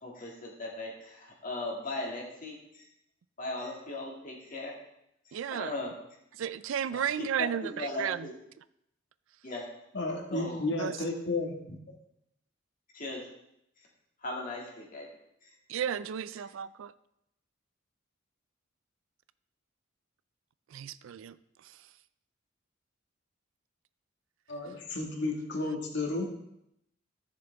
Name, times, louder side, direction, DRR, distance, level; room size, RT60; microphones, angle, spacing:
voice 1, 0.0-2.8 3.4-4.7 5.3-5.9 6.9-8.3 9.4-9.7 10.3-10.6 12.9-13.3 14.2-15.1 15.4-15.5, left 2 dB, 45° left, -2 dB, 2.2 m, -38 dB
voice 2, 5.3-5.7 6.4-8.3 10.8-11.0 15.7-16.9 20.7-21.4, right 8 dB, 75° right, 16 dB, 0.4 m, -33 dB
voice 3, 9.9-11.8 24.5-26.3, left 2 dB, 60° left, 1 dB, 1.8 m, -32 dB
14.0 x 6.7 x 3.5 m, 0.80 s
head